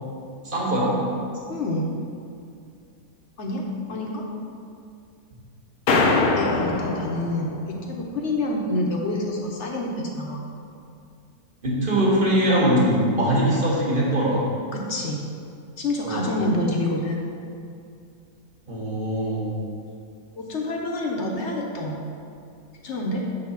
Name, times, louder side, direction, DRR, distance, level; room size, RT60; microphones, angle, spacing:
voice 1, 0.4-1.0 11.6-14.4 16.0-16.4 18.7-19.6, right 1 dB, 35° right, -5 dB, 1.6 m, -22 dB
voice 2, 1.5-1.9 3.4-4.3 6.3-10.4 14.7-15.2 15.8-17.2 20.4-22.0 22.8-23.2, left 1 dB, 55° left, -1 dB, 1.0 m, -27 dB
sound 1, 5.9-7.9, left 3 dB, 75° left, 1.1 m, -22 dB
7.0 x 4.0 x 5.7 m, 2.4 s
omnidirectional pair, 1.6 m